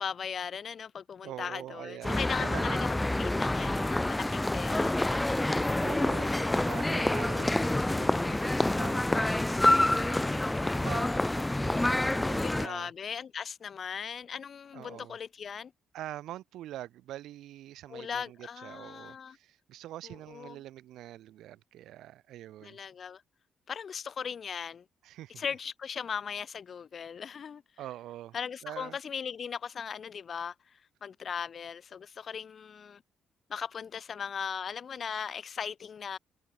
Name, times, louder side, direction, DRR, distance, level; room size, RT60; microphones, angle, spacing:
voice 1, 0.0-5.3 12.4-15.7 17.9-19.4 20.0-20.6 22.6-23.2 23.7-24.8 25.4-27.6 28.3-33.0 33.5-36.2, left 7 dB, 50° left, 1.7 m, -38 dB
voice 2, 1.2-2.8 5.8-11.1 11.5-12.9 14.7-15.2 15.9-22.8 25.0-25.4 27.8-28.4 28.6-29.0, right 13 dB, 85° right, 3.5 m, -44 dB
sound 1, 2.0-12.7, left 1 dB, 10° left, 2.4 m, -27 dB
cardioid pair, 90°, 0 cm